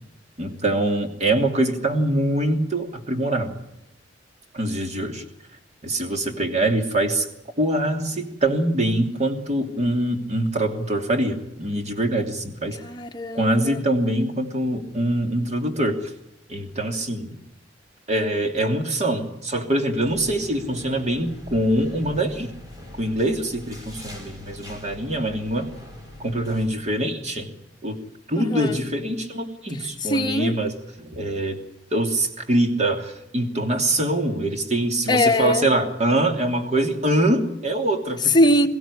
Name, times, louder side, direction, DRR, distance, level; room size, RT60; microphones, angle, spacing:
voice 1, 0.4-3.6 4.5-5.2 5.8-7.3 7.6-12.8 13.3-16.1 16.5-17.4 18.1-22.5 23.0-25.7 26.2-27.5 27.8-28.0 28.3-31.6 31.9-38.3, right 1 dB, 40° right, 2.9 m, -24 dB
voice 2, 12.8-13.8 28.3-28.8 30.0-30.6 35.1-35.7 38.3-38.7, left 1 dB, 25° left, 1.4 m, -21 dB
sound 1, 20.0-26.7, left 1 dB, 20° right, 5.4 m, -42 dB
23.0 x 16.0 x 9.9 m
head